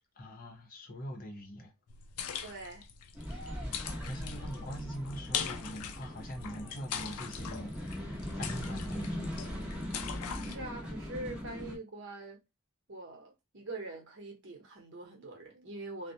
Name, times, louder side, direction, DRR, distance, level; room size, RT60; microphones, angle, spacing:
voice 1, 0.2-1.7 3.3-3.5 3.8-9.4, equal, 40° left, 0.6 m, -43 dB
sound 1, 1.9-10.6, left 8 dB, 80° left, 0.4 m, -42 dB
voice 2, 2.4-2.9 3.3-3.7 10.5-12.4 12.9-16.1, right 2 dB, 55° right, 0.9 m, -44 dB
sound 2, 3.1-11.8, equal, 5° right, 0.7 m, -40 dB
2.3 x 2.0 x 2.7 m
head